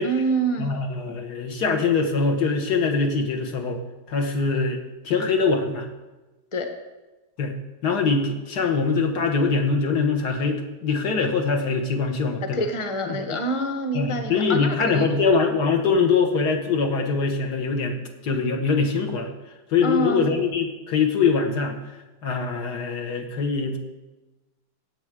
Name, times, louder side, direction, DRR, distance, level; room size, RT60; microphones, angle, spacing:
voice 1, 0.0-0.7 6.5-6.7 12.5-15.0 19.8-20.3, right 2 dB, 20° left, 5 dB, 1.0 m, -26 dB
voice 2, 0.6-3.8 4.1-4.8 5.0-5.9 7.4-7.6 7.8-12.6 13.1-13.4 13.9-19.3 19.7-21.8 22.2-23.8, left 4 dB, 70° left, 3 dB, 1.8 m, -23 dB
16.5 x 8.2 x 4.9 m, 1.1 s
omnidirectional pair, 1.9 m